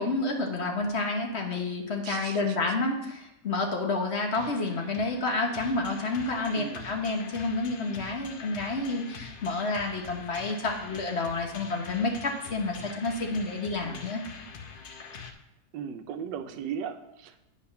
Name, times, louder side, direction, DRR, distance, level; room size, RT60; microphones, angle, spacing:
voice 1, 0.0-14.2, left 3 dB, 45° left, 2 dB, 1.2 m, -29 dB
voice 2, 2.0-2.6 6.5-6.9 13.8-14.0 15.7-17.5, right 7 dB, 85° right, 9 dB, 1.3 m, -37 dB
sound 1, 4.3-15.3, left 5 dB, 75° left, 0.5 m, -44 dB
8.6 x 4.8 x 5.8 m, 0.87 s
omnidirectional pair, 1.9 m